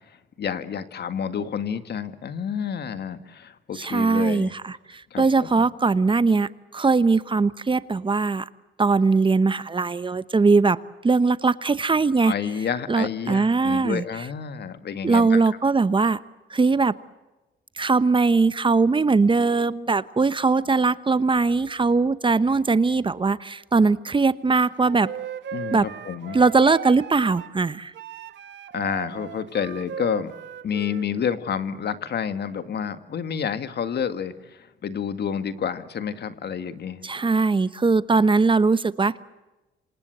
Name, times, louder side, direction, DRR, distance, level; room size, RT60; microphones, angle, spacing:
voice 1, 0.4-4.5 5.1-5.5 12.2-15.4 25.5-26.4 28.7-30.3 30.6-37.0, left 7 dB, 55° left, 10 dB, 2.0 m, -29 dB
voice 2, 3.7-8.5 8.8-10.8 11.0-12.3 12.9-14.3 15.0-16.2 16.5-16.9 17.8-25.1 25.7-25.9 26.3-27.9 37.0-39.2, right 4 dB, 25° right, 15 dB, 1.0 m, -20 dB
Wind instrument woodwind instrument, 24.8-27.6 27.9-31.1, right 9 dB, 65° right, 1.3 m, -37 dB
27.5 x 26.5 x 8.0 m, 1.1 s
cardioid pair, 90°, 20 cm